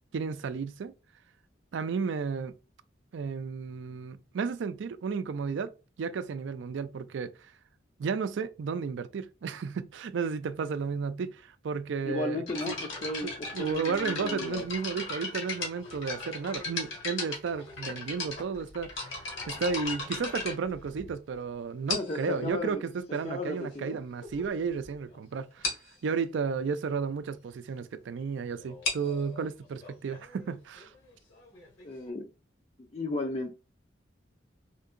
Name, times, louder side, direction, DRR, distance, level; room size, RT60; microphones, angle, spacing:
voice 1, 0.1-0.9 1.7-2.5 3.1-5.7 6.0-7.5 8.0-12.7 13.2-30.9, right 5 dB, 70° right, 0.4 m, -33 dB
voice 2, 12.0-14.6 21.9-22.8 23.1-24.0 31.8-32.3 32.9-33.5, left 2 dB, 35° left, 0.4 m, -34 dB
sound 1, 12.5-21.3 21.9-22.3 23.1-23.2 23.9-24.0 24.2-24.4 24.8-24.9 25.1-25.2 25.6-25.9 28.6-32.1, left 3 dB, 90° left, 1.6 m, -37 dB
4.3 x 2.8 x 2.5 m
head